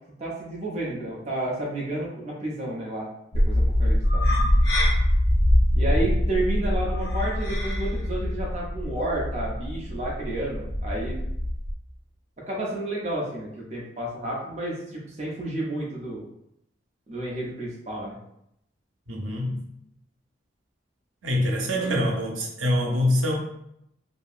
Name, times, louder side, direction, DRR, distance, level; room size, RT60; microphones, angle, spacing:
voice 1, 0.2-4.2 5.7-11.2 12.5-16.2 17.1-18.2 21.7-22.1, right 1 dB, 35° right, -4 dB, 0.6 m, -31 dB
sound 1, 3.3-11.7, left 1 dB, 60° left, 0.6 m, -23 dB
voice 2, 19.1-19.6 21.2-23.3, left 1 dB, 85° right, -1 dB, 0.7 m, -25 dB
2.8 x 2.6 x 2.4 m, 0.77 s
head